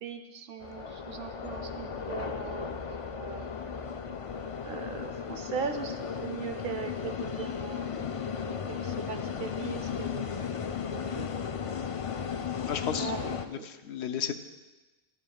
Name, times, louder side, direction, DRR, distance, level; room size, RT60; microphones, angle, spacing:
voice 1, 0.0-3.6 4.6-8.2 8.7-10.6 10.9-11.6 13.0-13.7, right 6 dB, 60° right, 7 dB, 0.8 m, -40 dB
sound 1, 0.6-13.5, left 7 dB, 50° left, 0.4 m, -35 dB
voice 2, 12.7-14.4, left 7 dB, 85° left, 8 dB, 0.9 m, -35 dB
12.0 x 12.0 x 2.3 m, 1.1 s
omnidirectional pair, 1.1 m